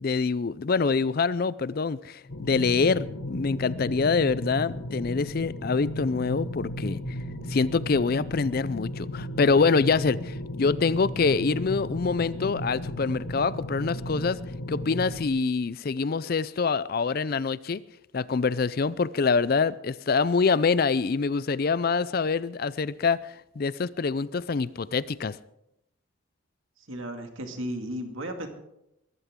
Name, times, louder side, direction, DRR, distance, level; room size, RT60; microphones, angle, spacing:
voice 1, 0.0-7.0 7.5-14.4 14.7-17.8 18.1-25.4, left 4 dB, 45° left, 18 dB, 0.4 m, -25 dB
sound 1, 2.3-15.3, equal, 75° left, 1.5 m, -35 dB
voice 2, 26.9-28.5, equal, 70° right, 5 dB, 2.2 m, -34 dB
21.5 x 14.0 x 3.7 m, 0.83 s
head